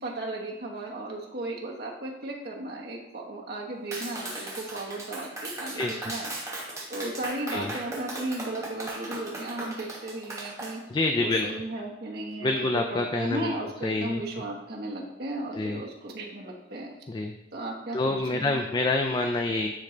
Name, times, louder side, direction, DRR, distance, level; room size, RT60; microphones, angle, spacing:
voice 1, 0.0-6.3 6.9-10.8 11.2-17.0 17.5-18.6, right 2 dB, 60° right, -1 dB, 1.2 m, -35 dB
Clapping, 3.9-10.7, right 2 dB, 15° right, 1.2 m, -37 dB
voice 2, 5.7-6.1 7.5-7.7 10.9-11.5 12.4-13.5 13.8-14.2 15.6-15.8 17.1-17.3 17.9-19.7, left 2 dB, 25° left, 4 dB, 0.3 m, -27 dB
9.7 x 3.2 x 3.8 m, 1.0 s
head